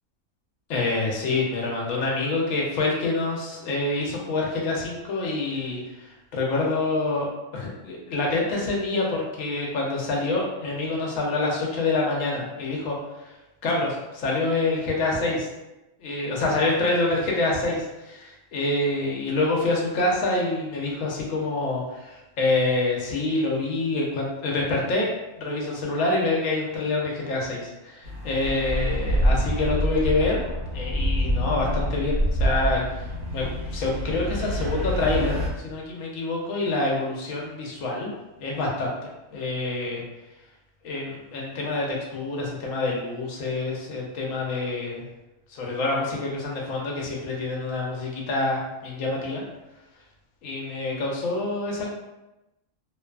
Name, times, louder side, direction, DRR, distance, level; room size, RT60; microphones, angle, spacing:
voice 1, 0.7-7.3 7.5-13.0 13.2-13.3 13.6-15.5 16.0-25.1 25.4-30.4 30.7-35.4 35.6-38.1 38.4-38.9 39.3-40.0 40.8-45.0 45.5-49.4 50.4-51.9, left 2 dB, 85° left, -2 dB, 1.0 m, -26 dB
sound 1, 28.0-35.5, left 1 dB, 65° right, 1.0 m, -32 dB
sound 2, 28.4-33.9, equal, 50° left, 0.8 m, -26 dB
2.7 x 2.3 x 2.2 m, 0.99 s
omnidirectional pair, 1.3 m